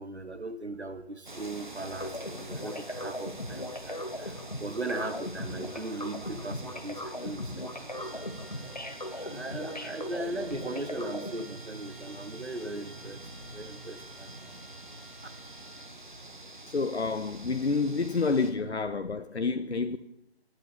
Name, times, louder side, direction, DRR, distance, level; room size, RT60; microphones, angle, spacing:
voice 1, 0.0-8.2 9.1-13.2 13.5-14.5 15.2-15.3, right 2 dB, 85° right, 1.1 m, -38 dB
sound 1, 1.3-18.5, right 2 dB, 45° right, 1.4 m, -46 dB
sound 2, 1.8-11.4, left 1 dB, 40° left, 0.7 m, -39 dB
Trumpet, 7.9-16.0, right 3 dB, 10° right, 4.9 m, -54 dB
voice 2, 16.7-20.0, left 4 dB, 80° left, 0.7 m, -29 dB
20.0 x 7.7 x 3.4 m
figure-of-eight pair, 165°, 33 cm